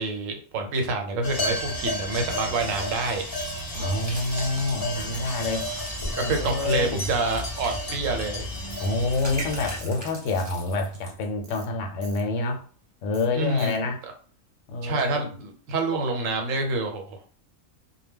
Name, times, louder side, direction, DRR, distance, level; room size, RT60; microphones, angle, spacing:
voice 1, 0.0-3.2 6.2-8.5 13.3-13.7 14.8-17.3, right 3 dB, 80° right, 1.0 m, -27 dB
sound 1, 1.2-9.8, left 1 dB, 30° left, 0.4 m, -32 dB
sound 2, 2.6-11.3, right 1 dB, 25° right, 0.9 m, -43 dB
voice 2, 3.7-5.7 6.2-7.1 8.8-12.6 13.0-14.0 14.7-15.3, left 2 dB, 75° left, 0.9 m, -27 dB
Tools, 8.7-8.9 9.8-10.0 10.3-10.5 11.4-11.7 12.0-12.2 13.1-13.3 13.6-13.8, right 5 dB, 55° right, 0.7 m, -48 dB
2.2 x 2.1 x 3.4 m
omnidirectional pair, 1.3 m